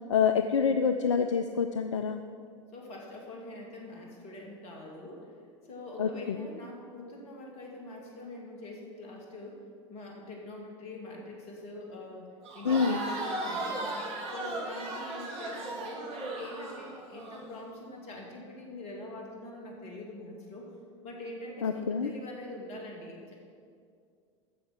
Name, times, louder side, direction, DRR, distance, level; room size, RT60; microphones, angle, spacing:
voice 1, 0.1-2.2 6.0-6.5 12.6-13.0 21.6-22.1, left 6 dB, 70° left, 8 dB, 0.4 m, -27 dB
voice 2, 2.7-5.3 5.7-9.6 9.9-14.0 14.3-20.7 21.0-23.3, left 1 dB, 40° left, -1 dB, 2.4 m, -44 dB
Crowd, 12.4-17.4, right 2 dB, 40° right, 2.0 m, -36 dB
8.6 x 7.2 x 6.7 m, 2.2 s
figure-of-eight pair, 75°, 16 cm